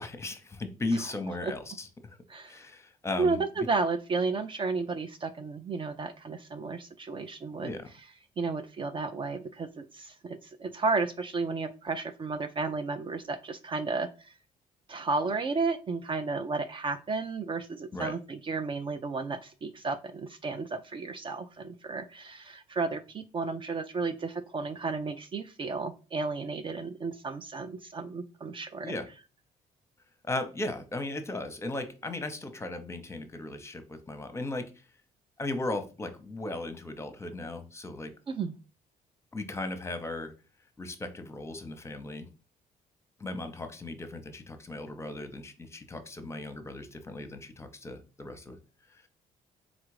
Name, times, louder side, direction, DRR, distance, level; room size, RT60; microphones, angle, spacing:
voice 1, 0.0-2.2 2.4-3.4 7.6-7.9 17.9-18.1 28.8-29.1 30.2-34.7 35.4-38.1 39.3-40.3 40.8-42.3 43.2-48.6, left 2 dB, 20° left, 8 dB, 0.7 m, -36 dB
voice 2, 3.2-7.7 8.4-14.1 14.9-28.9 38.3-38.5, right 4 dB, 35° right, 10 dB, 0.4 m, -33 dB
4.0 x 2.4 x 4.7 m, 0.33 s
cardioid pair, 100°, 14 cm